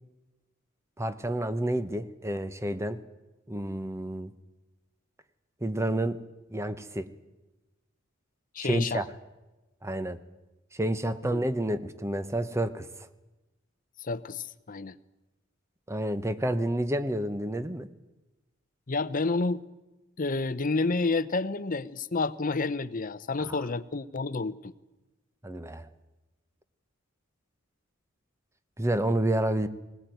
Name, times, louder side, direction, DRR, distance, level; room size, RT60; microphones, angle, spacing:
voice 1, 1.0-3.0 3.5-4.3 5.6-6.2 6.5-7.1 8.6-9.0 9.8-10.2 10.7-12.9 15.9-17.9 23.5-23.6 25.4-25.9 28.8-29.7, right 1 dB, 15° right, 12 dB, 1.0 m, -29 dB
voice 2, 8.5-9.0 11.2-11.4 14.0-14.9 18.9-19.6 20.2-24.7, left 3 dB, 40° left, 15 dB, 0.8 m, -29 dB
20.0 x 17.5 x 9.3 m, 1.1 s
head